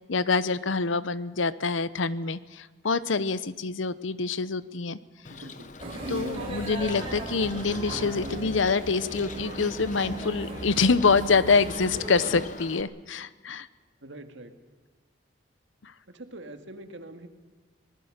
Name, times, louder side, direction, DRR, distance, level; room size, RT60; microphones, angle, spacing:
voice 1, 0.1-5.0 6.1-13.7 15.8-15.9, left 4 dB, 75° left, 16 dB, 0.8 m, -26 dB
Bird, 5.2-12.8, left 3 dB, 40° left, 1.0 m, -43 dB
voice 2, 5.3-5.7 14.0-14.5 16.1-17.3, right 1 dB, 70° right, 7 dB, 1.9 m, -44 dB
sound 1, 5.8-12.4, right 1 dB, 30° right, 5.8 m, -36 dB
24.5 x 19.5 x 6.6 m, 1.4 s
head